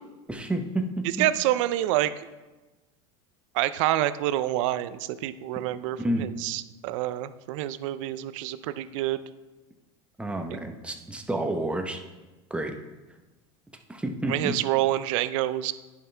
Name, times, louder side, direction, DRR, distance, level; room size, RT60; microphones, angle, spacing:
voice 1, 0.3-1.3 6.0-6.3 10.2-12.0 12.5-12.8 13.9-14.5, right 1 dB, 5° right, 4 dB, 0.9 m, -30 dB
voice 2, 1.2-2.1 3.5-9.2 14.3-15.7, right 14 dB, 75° right, 15 dB, 0.5 m, -27 dB
10.5 x 5.6 x 3.4 m, 1.2 s
supercardioid pair, 105°, 16 cm